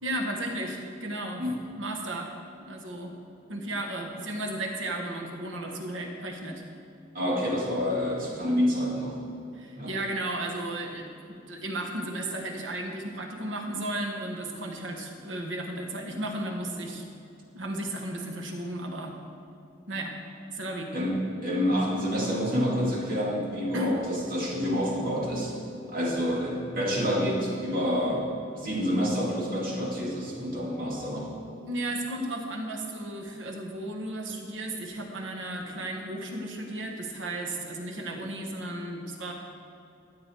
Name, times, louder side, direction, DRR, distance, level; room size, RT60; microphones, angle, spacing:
voice 1, 0.0-1.4 1.8-2.3 2.6-3.1 3.5-6.6 9.5-17.1 17.5-19.2 19.9-20.2 20.5-20.9 23.7-24.0 31.7-39.3, right 1 dB, 80° right, 2 dB, 1.3 m, -34 dB
voice 2, 7.1-9.2 9.8-9.9 20.9-25.5 25.9-28.3 28.5-31.3, equal, 50° right, -4 dB, 2.4 m, -28 dB
12.5 x 8.7 x 4.6 m, 2.6 s
head